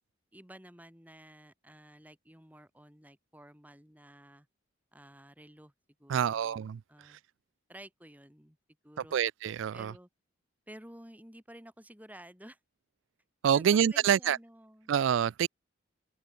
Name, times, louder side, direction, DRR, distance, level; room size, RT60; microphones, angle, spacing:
voice 1, 0.3-4.5 4.9-5.7 6.0-7.2 7.7-8.6 8.8-9.2 9.7-10.1 10.7-12.6 13.5-14.9, right 1 dB, 10° right, 5.8 m, -52 dB
voice 2, 6.1-7.2 9.1-9.9 13.4-14.4 14.9-15.5, right 8 dB, 75° right, 0.3 m, -27 dB
open air
head